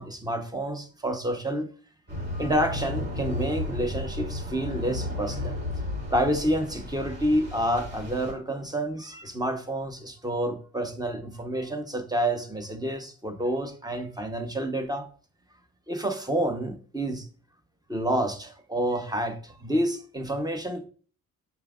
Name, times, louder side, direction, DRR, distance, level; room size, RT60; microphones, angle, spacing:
voice 1, 0.0-1.7 2.4-5.6 6.1-15.1 15.9-17.3 17.9-20.8, right 1 dB, 15° right, 6 dB, 1.2 m, -29 dB
sound 1, 2.1-8.3, left 1 dB, 35° right, 3.4 m, -33 dB
7.1 x 5.5 x 2.6 m, 0.40 s
cardioid pair, 90°, 30 cm